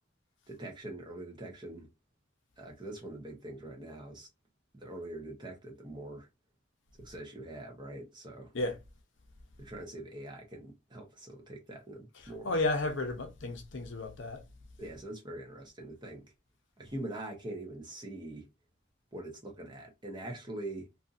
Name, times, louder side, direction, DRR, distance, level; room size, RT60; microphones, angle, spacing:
voice 1, 0.5-1.9 2.6-4.3 4.7-6.3 7.0-8.5 9.6-12.5 14.8-16.2 16.8-18.5 19.1-20.9, right 1 dB, 25° right, 0.9 m, -43 dB
voice 2, 12.4-14.4, left 2 dB, 70° left, 0.7 m, -32 dB
2.6 x 2.6 x 2.5 m
head